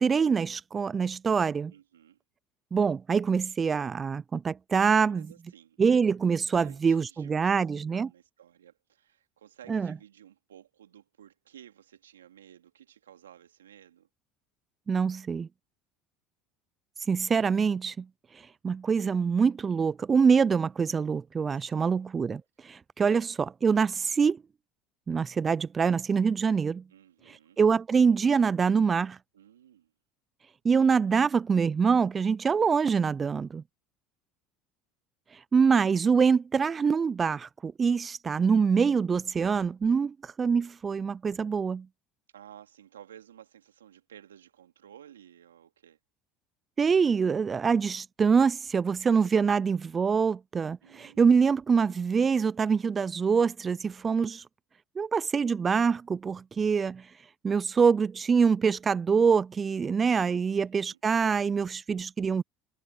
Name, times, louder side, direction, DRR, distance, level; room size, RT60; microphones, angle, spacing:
voice 1, 0.0-1.7 2.7-5.3 5.8-8.1 9.7-9.9 14.9-15.5 17.1-18.1 18.6-24.4 25.1-26.8 27.6-29.2 30.6-33.6 35.5-41.9 46.8-54.4 55.0-57.0 57.4-62.4, right 6 dB, 30° right, 0.5 m, -25 dB
voice 2, 1.7-2.2 5.1-5.8 6.6-14.1 21.5-22.1 26.9-27.6 29.3-29.9 42.3-46.0 50.8-51.4 60.5-61.0, right 10 dB, 85° right, 3.3 m, -54 dB
hypercardioid pair, 70°, 0 cm